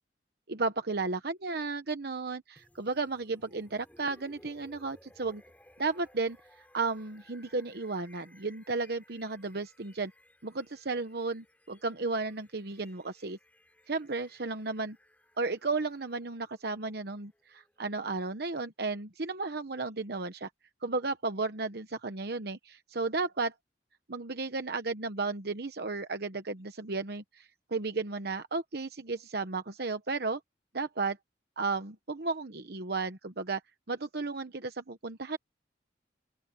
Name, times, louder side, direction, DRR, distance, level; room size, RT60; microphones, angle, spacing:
voice 1, 0.5-5.4 5.8-6.4 6.7-10.1 10.4-13.4 13.9-15.0 15.4-20.5 20.8-23.5 24.1-30.4 30.7-31.2 31.6-33.6 33.9-35.4, right 3 dB, 60° right, 1.0 m, -34 dB
sound 1, 2.6-18.4, left 1 dB, 10° left, 5.8 m, -61 dB
open air
head